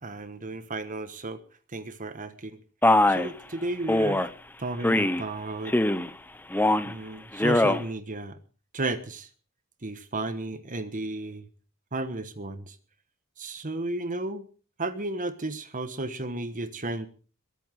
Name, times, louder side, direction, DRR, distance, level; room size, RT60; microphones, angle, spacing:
voice 1, 0.0-1.4 1.7-2.6 3.1-4.2 4.6-5.7 6.8-8.4 8.7-9.3 9.8-11.5 11.9-12.8 13.4-14.5 14.8-17.1, right 2 dB, 40° right, 11 dB, 1.3 m, -33 dB
Male speech man speaking, 2.8-3.3 3.9-4.3 4.8-5.2 5.6-6.1 6.5-6.9 7.3-7.8, left 1 dB, 10° left, 0.9 m, -22 dB
22.0 x 9.0 x 6.4 m, 0.40 s
head